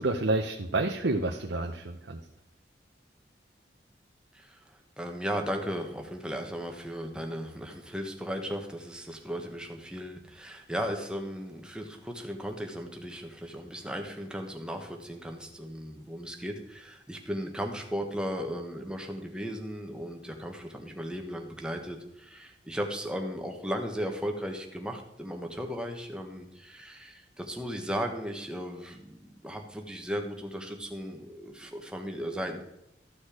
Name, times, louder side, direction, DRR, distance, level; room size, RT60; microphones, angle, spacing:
voice 1, 0.0-2.2, right 2 dB, 85° right, 2 dB, 0.9 m, -29 dB
voice 2, 4.3-32.6, equal, 5° right, 3 dB, 1.4 m, -36 dB
14.0 x 6.4 x 4.9 m, 0.85 s
head